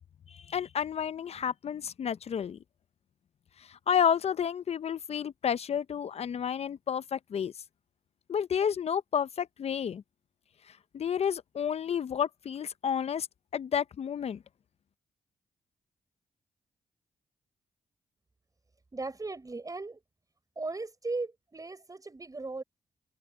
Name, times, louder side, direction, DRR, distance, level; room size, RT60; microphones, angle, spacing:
voice 1, 0.3-2.6 3.7-7.5 8.3-10.0 10.9-13.3 13.5-14.4, left 8 dB, 60° left, 0.7 m, -30 dB
voice 2, 18.9-20.0 20.6-22.6, right 3 dB, 30° right, 5.3 m, -37 dB
supercardioid pair, 50°, 12 cm